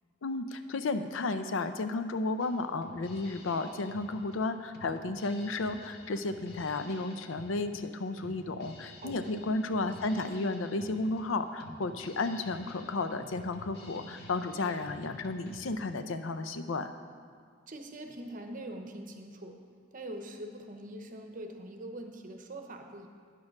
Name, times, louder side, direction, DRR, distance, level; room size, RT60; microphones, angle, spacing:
voice 1, 0.2-16.9, left 3 dB, 85° left, 9 dB, 0.6 m, -33 dB
Drum kit, 2.4-15.7, left 1 dB, 55° left, 1.1 m, -51 dB
voice 2, 9.0-9.3 17.7-19.6 19.9-23.1, right 1 dB, 45° right, 4 dB, 0.8 m, -43 dB
9.9 x 6.6 x 5.9 m, 2.1 s
head